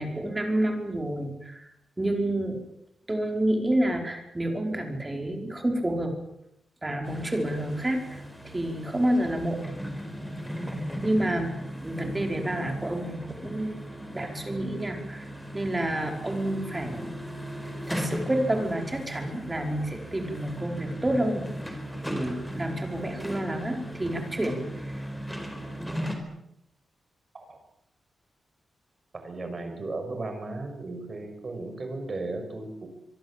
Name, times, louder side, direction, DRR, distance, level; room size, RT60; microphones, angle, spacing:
voice 1, 0.0-1.7 2.0-2.6 3.1-6.1 6.8-8.2 8.5-9.6 11.0-11.5 11.8-13.8 14.1-15.3 15.5-17.1 17.9-21.5 22.0-24.6 24.9-25.0, right 1 dB, 15° right, 4 dB, 5.1 m, -29 dB
sound 1, 7.0-26.2, equal, 5° left, 4.7 m, -37 dB
voice 2, 29.1-32.9, right 2 dB, 35° right, 6 dB, 6.3 m, -35 dB
24.5 x 24.0 x 7.7 m, 0.78 s
wide cardioid pair, 150°, 0 cm